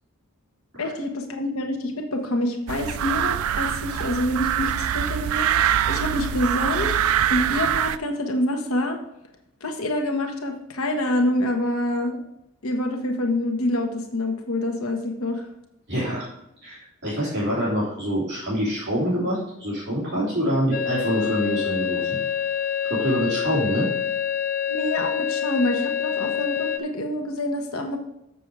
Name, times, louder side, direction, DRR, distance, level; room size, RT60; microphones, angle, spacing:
voice 1, 0.8-9.0 9.6-12.2 12.6-15.5 24.7-28.0, left 1 dB, 85° left, 3 dB, 1.1 m, -26 dB
sound 1, 2.7-8.0, right 10 dB, 85° right, 0.4 m, -24 dB
voice 2, 15.9-16.2 16.6-22.2 22.8-23.9, equal, 50° right, -9 dB, 3.2 m, -25 dB
sound 2, 20.7-26.8, left 8 dB, 40° left, 0.5 m, -26 dB
7.0 x 6.9 x 4.7 m, 0.85 s
head